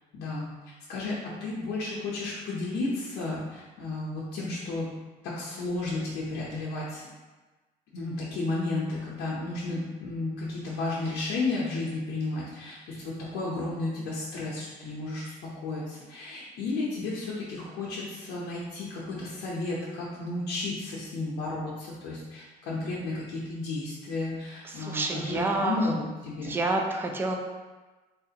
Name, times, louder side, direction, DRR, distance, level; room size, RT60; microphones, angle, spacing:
voice 1, 0.1-0.5 0.9-4.9 5.2-7.1 7.9-26.6, left 2 dB, 85° left, -6 dB, 0.6 m, -33 dB
voice 2, 24.6-25.9 26.4-27.3, right 2 dB, 15° right, 2 dB, 0.3 m, -29 dB
3.4 x 2.4 x 2.7 m, 1.2 s
cardioid pair, 110°, 17 cm